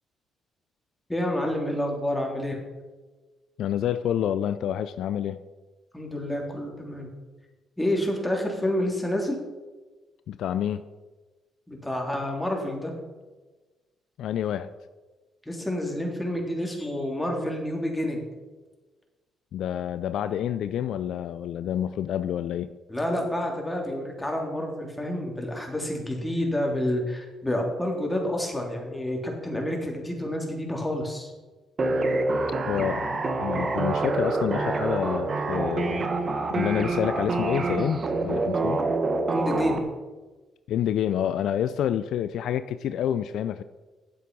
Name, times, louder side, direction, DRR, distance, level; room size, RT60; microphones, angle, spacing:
voice 1, 1.1-2.6 5.9-7.1 7.8-9.4 11.7-12.9 15.5-18.2 22.9-31.3 39.3-39.8, left 1 dB, 10° left, 0 dB, 2.9 m, -29 dB
voice 2, 3.6-5.4 10.3-10.8 14.2-14.7 19.5-22.7 32.7-36.1 36.5-38.8 40.7-43.6, left 10 dB, 70° left, 12 dB, 0.3 m, -28 dB
sound 1, 31.8-39.8, right 3 dB, 45° right, 1.3 m, -26 dB
8.5 x 7.6 x 5.3 m, 1.2 s
hypercardioid pair, 55°, 0 cm